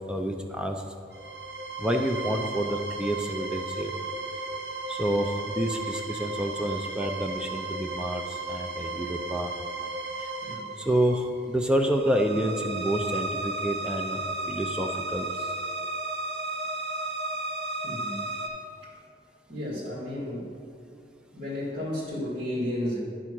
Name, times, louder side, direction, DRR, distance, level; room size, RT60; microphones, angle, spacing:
voice 1, 0.1-0.8 1.8-3.9 4.9-9.5 10.9-14.2 14.5-15.3, right 1 dB, 5° right, 4 dB, 0.4 m, -28 dB
sound 1, 1.1-18.5, right 2 dB, 75° right, 1.1 m, -34 dB
voice 2, 17.8-18.2 18.8-18.9 19.5-20.5 21.3-23.0, left 1 dB, 55° right, -8 dB, 2.0 m, -33 dB
11.0 x 3.7 x 6.0 m, 2.3 s
head